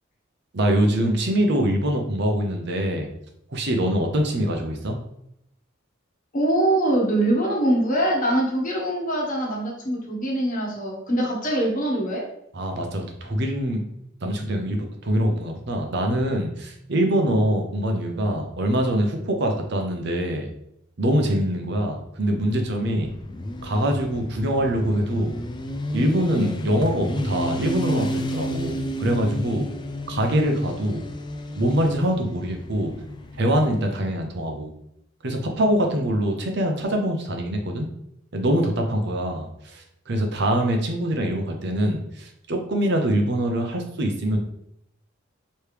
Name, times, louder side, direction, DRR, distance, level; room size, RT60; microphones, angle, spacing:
voice 1, 0.5-3.1 3.5-5.0 12.5-13.8 14.2-20.5 21.0-23.1 23.6-25.3 25.9-29.7 30.1-31.1 31.6-32.9 33.4-34.7 35.2-37.9 38.3-44.4, right 1 dB, 60° right, 3 dB, 0.7 m, -24 dB
voice 2, 6.3-12.2, right 1 dB, 40° left, -2 dB, 1.2 m, -23 dB
Motorcycle, 22.3-34.0, left 1 dB, 20° left, 0.4 m, -32 dB
4.7 x 3.2 x 3.3 m, 0.77 s
head